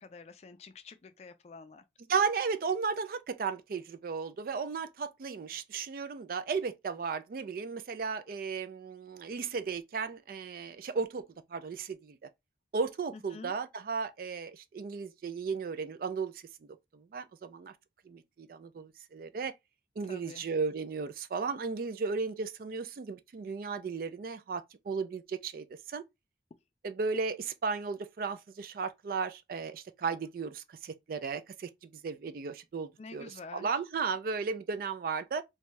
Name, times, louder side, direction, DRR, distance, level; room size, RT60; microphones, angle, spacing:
voice 1, 0.0-1.8 13.1-13.5 20.1-20.4 33.0-33.7, left 4 dB, 35° left, 0.3 m, -48 dB
voice 2, 2.1-11.2 11.5-12.3 12.7-17.7 18.0-19.5 20.0-26.0 26.8-35.4, right 5 dB, 55° right, 0.3 m, -35 dB
2.6 x 2.3 x 3.0 m
head